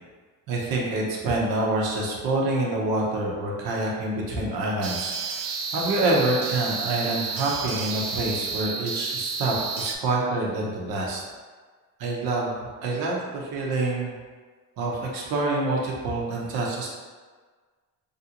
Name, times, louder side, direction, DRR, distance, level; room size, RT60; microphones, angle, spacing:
voice 1, 0.5-11.2 12.0-14.1 14.8-16.9, right 2 dB, 85° right, -2 dB, 0.8 m, -27 dB
sound 1, 4.8-10.0, right 4 dB, 50° right, 0.4 m, -31 dB
3.2 x 2.6 x 2.8 m, 1.5 s
cardioid pair, 90°, 36 cm